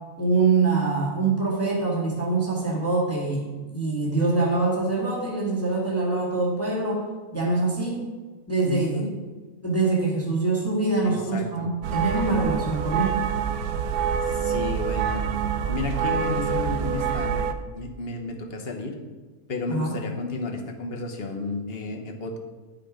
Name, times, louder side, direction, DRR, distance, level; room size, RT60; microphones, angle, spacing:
voice 1, 0.2-3.4 3.7-7.0 7.3-8.0 8.5-9.0 9.6-13.2 19.7-19.9, right 3 dB, 10° left, -4 dB, 1.6 m, -24 dB
voice 2, 8.7-9.1 11.0-11.7 14.3-15.2 15.7-17.5 17.7-19.0 19.5-22.4, left 3 dB, 45° left, 3 dB, 1.2 m, -32 dB
sound 1, 11.8-17.5, right 7 dB, 80° right, 1.1 m, -26 dB
10.0 x 6.0 x 5.0 m, 1.3 s
omnidirectional pair, 1.6 m